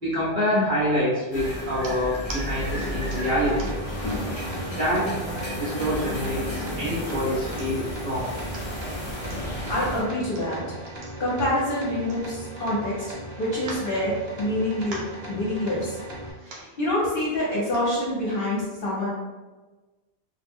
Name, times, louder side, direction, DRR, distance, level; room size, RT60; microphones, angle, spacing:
voice 1, 0.0-3.7 4.7-5.1 5.5-8.3, equal, 55° right, -9 dB, 0.9 m, -26 dB
sound 1, 1.3-10.0, equal, 35° left, 0.5 m, -32 dB
sound 2, 1.8-2.4 3.1-3.9 4.5-4.6 5.0-5.6 6.2-6.9 7.3-7.4 7.6-7.9 8.3-8.7 9.3-9.4 10.2-12.7 13.0-13.1 13.5-14.5 14.8-15.2 16.0-16.1 16.3-16.7 17.6-17.9 18.5-18.6, right 2 dB, 85° right, 0.9 m, -42 dB
sound 3, 2.6-16.3, right 1 dB, 35° right, 0.4 m, -39 dB
voice 2, 9.7-10.6 11.2-13.1 13.4-15.0 15.3-16.0 16.5-19.1, left 1 dB, 60° left, -7 dB, 0.9 m, -26 dB
2.3 x 2.1 x 3.5 m, 1.2 s
omnidirectional pair, 1.1 m